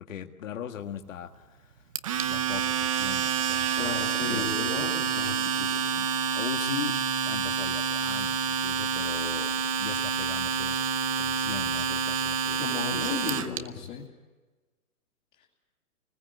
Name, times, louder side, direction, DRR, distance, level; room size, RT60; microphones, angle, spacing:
voice 1, 0.0-1.9 2.3-5.0 6.3-6.9 7.2-10.8 11.2-13.9, left 9 dB, 60° left, 5 dB, 1.8 m, -40 dB
Domestic sounds home sounds, 2.0-13.6, right 7 dB, 25° right, 0.8 m, -28 dB
voice 2, 3.8-6.1 12.6-14.0, left 6 dB, 20° left, -6 dB, 2.5 m, -35 dB
24.0 x 20.5 x 8.1 m, 1.2 s
hypercardioid pair, 160°, 44 cm